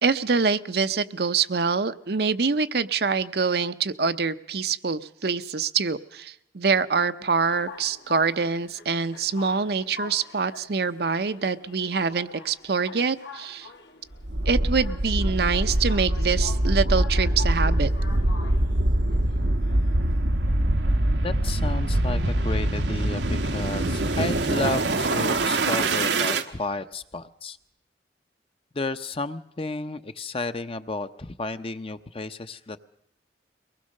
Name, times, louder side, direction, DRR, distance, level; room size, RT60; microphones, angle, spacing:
voice 1, 0.0-13.7 14.5-17.9, right 5 dB, 60° right, 11 dB, 0.7 m, -25 dB
sound 1, 7.4-22.2, left 4 dB, 80° left, 2.6 m, -45 dB
sound 2, 14.2-26.4, right 1 dB, 85° right, 1.1 m, -24 dB
voice 2, 21.2-27.6 28.7-32.8, left 2 dB, 30° left, 10 dB, 0.8 m, -32 dB
23.0 x 19.5 x 6.5 m, 0.78 s
head